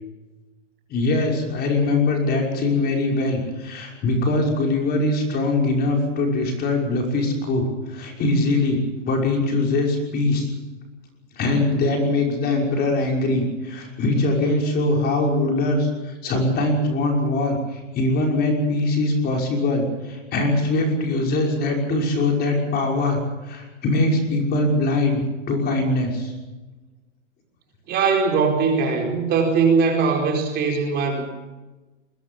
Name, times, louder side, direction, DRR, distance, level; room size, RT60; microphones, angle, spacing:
voice 1, 0.9-10.5 11.4-26.3, left 2 dB, 25° left, 1 dB, 5.8 m, -22 dB
voice 2, 27.9-31.2, right 5 dB, 25° right, 2 dB, 4.6 m, -20 dB
21.5 x 21.0 x 7.1 m, 1.1 s
hypercardioid pair, 145°, 37 cm